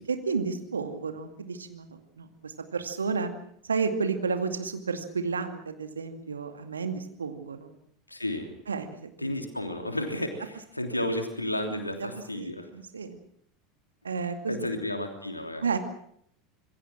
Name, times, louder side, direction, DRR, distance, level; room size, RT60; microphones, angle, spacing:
voice 1, 0.1-1.9 2.2-3.3 3.6-7.7 8.7-9.3 11.0-11.1 11.7-13.2 14.0-14.7 15.6-15.8, right 5 dB, 80° right, 7 dB, 2.4 m, -32 dB
voice 2, 8.1-8.5 9.2-12.7 14.5-15.6, left 1 dB, 90° left, 5 dB, 3.1 m, -32 dB
26.5 x 21.5 x 6.1 m, 0.66 s
figure-of-eight pair, 75°, 0 cm